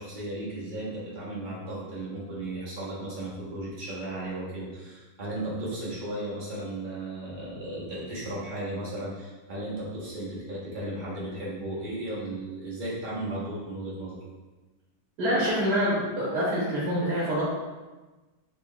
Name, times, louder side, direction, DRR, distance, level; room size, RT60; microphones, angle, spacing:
voice 1, 0.0-14.2, right 1 dB, 35° right, -7 dB, 0.9 m, -35 dB
voice 2, 15.2-17.4, equal, 75° right, -7 dB, 1.4 m, -26 dB
3.6 x 3.6 x 2.3 m, 1.2 s
omnidirectional pair, 1.8 m